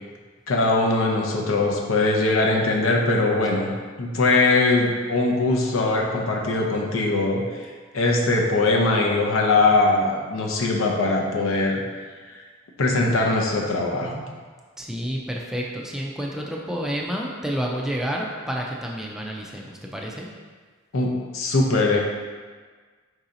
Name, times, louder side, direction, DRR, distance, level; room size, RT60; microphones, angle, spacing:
voice 1, 0.5-3.7 4.0-7.6 7.9-11.8 12.8-14.2 20.9-22.0, left 2 dB, 80° left, 0 dB, 0.7 m, -21 dB
voice 2, 14.8-20.3, equal, ahead, -2 dB, 0.4 m, -29 dB
4.7 x 2.8 x 3.8 m, 1.5 s
head